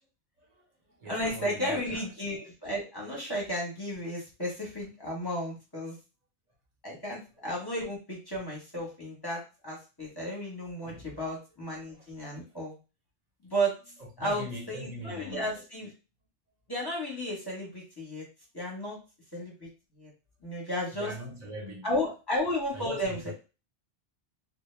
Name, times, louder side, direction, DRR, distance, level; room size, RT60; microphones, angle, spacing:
voice 1, 0.4-2.0 10.8-11.2 11.9-12.1 12.5-12.6 14.0-15.6 20.9-21.9 22.7-23.3, equal, 40° right, 0.8 m, -42 dB
voice 2, 1.0-6.0 6.8-12.8 13.4-13.7 14.2-15.9 16.7-18.2 18.5-19.0 19.3-19.7 20.0-20.1 20.4-21.1 21.8-23.3, equal, 25° left, 0.8 m, -33 dB
2.1 x 2.1 x 3.1 m
omnidirectional pair, 1.1 m